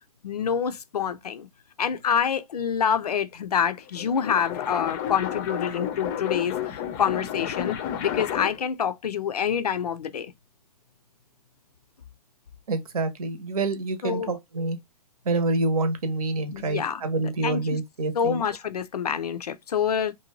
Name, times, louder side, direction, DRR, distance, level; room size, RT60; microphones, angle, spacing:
voice 1, 0.2-1.5 1.8-10.3 14.0-14.3 16.5-17.0 17.4-17.6 18.1-20.1, left 7 dB, 85° left, 0.5 m, -27 dB
sound 1, 3.8-8.7, left 9 dB, 30° left, 0.4 m, -31 dB
voice 2, 12.7-14.8 15.2-18.4, right 2 dB, 70° right, 0.8 m, -27 dB
2.6 x 2.2 x 2.9 m
hypercardioid pair, 125°, 19 cm